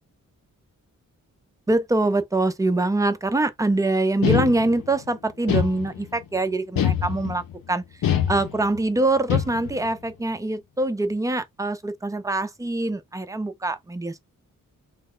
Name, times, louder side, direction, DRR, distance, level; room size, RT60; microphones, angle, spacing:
voice 1, 1.7-7.4 7.7-7.8 8.3-14.2, right 2 dB, 10° right, 0.3 m, -24 dB
sound 1, 4.2-5.0 5.5-6.2 6.8-7.5 8.0-8.8 9.3-9.9, left 10 dB, 90° left, 0.8 m, -24 dB
3.2 x 2.1 x 3.6 m
wide cardioid pair, 150°, 34 cm